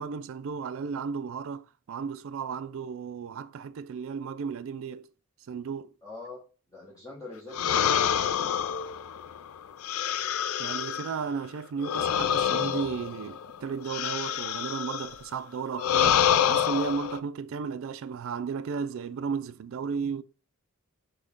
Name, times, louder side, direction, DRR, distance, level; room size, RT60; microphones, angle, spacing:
voice 1, 0.0-5.1 5.5-5.9 10.6-20.2, right 6 dB, 65° right, 0.3 m, -34 dB
voice 2, 6.0-8.7, left 3 dB, 15° left, 1.3 m, -44 dB
sound 1, 7.5-11.2 11.8-15.2 15.8-17.2, left 9 dB, 80° left, 0.4 m, -27 dB
6.2 x 2.3 x 3.6 m
head